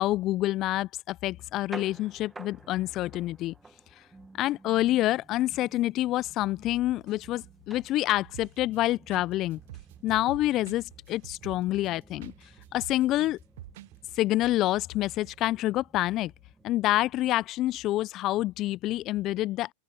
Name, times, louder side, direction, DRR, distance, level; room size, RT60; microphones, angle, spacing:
voice 1, 0.0-3.5 4.4-9.6 10.0-12.3 12.7-13.4 14.2-16.3 16.6-19.7, left 15 dB, 45° left, 0.4 m, -27 dB
sound 1, 1.3-17.5, right 3 dB, 10° right, 1.0 m, -53 dB
sound 2, 6.3-15.6, right 21 dB, 50° right, 7.4 m, -57 dB
sound 3, 8.3-8.8 9.1-9.3 9.5-12.4 12.6-13.9 14.1-14.2, right 14 dB, 70° right, 0.5 m, -45 dB
open air
hypercardioid pair, 105°, 0 cm